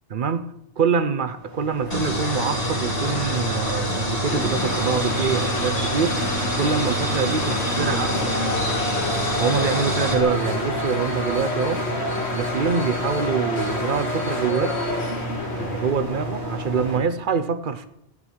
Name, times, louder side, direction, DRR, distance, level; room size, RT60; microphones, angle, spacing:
voice 1, 0.1-6.2 6.6-8.3 9.4-11.9 12.3-14.8 15.6-17.9, right 6 dB, 55° right, 0.8 m, -25 dB
sound 1, 1.3-17.0, equal, 80° right, 3.7 m, -31 dB
sound 2, 1.9-10.2, equal, 35° left, 1.7 m, -27 dB
sound 3, 4.3-16.6, left 2 dB, 70° left, 1.9 m, -29 dB
13.5 x 4.7 x 8.6 m
omnidirectional pair, 1.1 m